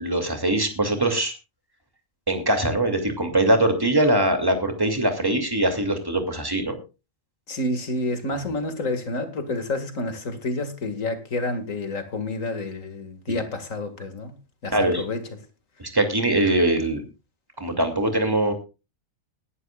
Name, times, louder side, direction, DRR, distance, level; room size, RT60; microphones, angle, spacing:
voice 1, 0.0-1.3 2.3-6.8 13.3-13.4 14.7-15.0 15.8-17.0 17.6-18.5, right 1 dB, 15° right, 5 dB, 2.6 m, -22 dB
voice 2, 7.5-14.3 14.6-15.2, left 2 dB, 70° left, 8 dB, 2.5 m, -29 dB
20.5 x 11.5 x 2.4 m, 0.29 s
omnidirectional pair, 1.4 m